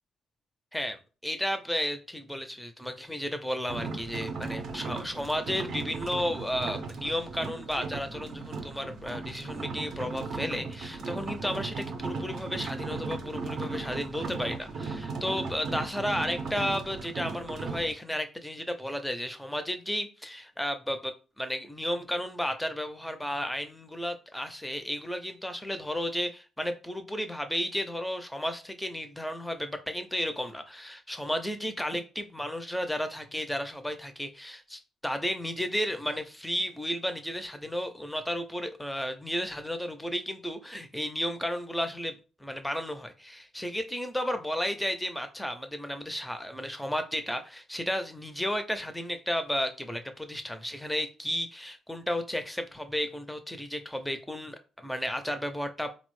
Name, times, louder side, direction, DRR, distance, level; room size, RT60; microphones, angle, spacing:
voice 1, 0.7-42.1 42.4-55.9, equal, 5° left, 0.5 m, -33 dB
sound 1, 3.7-17.9, right 4 dB, 60° right, 0.5 m, -37 dB
3.9 x 2.0 x 3.1 m
cardioid pair, 90°, 0 cm